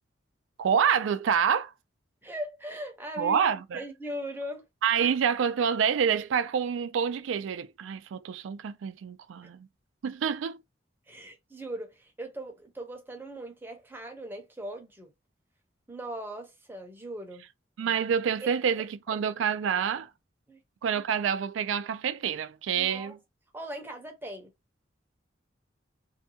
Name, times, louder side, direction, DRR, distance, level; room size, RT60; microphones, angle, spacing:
voice 1, 0.6-1.7 3.2-3.8 4.8-9.7 10.0-10.6 17.8-20.1 20.8-23.2, right 7 dB, 85° right, 0.3 m, -27 dB
voice 2, 2.2-3.4 3.7-4.6 11.1-15.1 15.9-17.4 18.4-18.5 20.5-20.6 22.7-23.1 23.5-24.5, right 1 dB, 10° right, 0.6 m, -39 dB
2.6 x 2.2 x 2.7 m
head